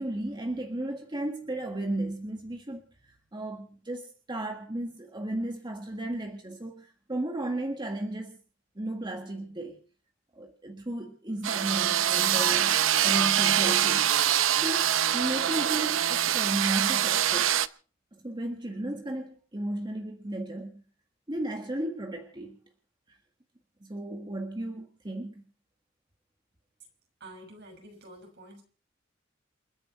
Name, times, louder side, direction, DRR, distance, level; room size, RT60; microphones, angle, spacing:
voice 1, 0.0-8.4 8.7-9.8 10.3-14.2 14.6-17.6 18.2-20.8 21.3-22.6 23.1-23.2 23.8-25.4, right 1 dB, 25° right, 3 dB, 1.7 m, -34 dB
sound 1, 11.4-17.7, right 10 dB, 85° right, 0.7 m, -24 dB
voice 2, 27.2-28.6, right 1 dB, 60° right, 3 dB, 6.3 m, -48 dB
29.0 x 10.0 x 4.3 m, 0.41 s
head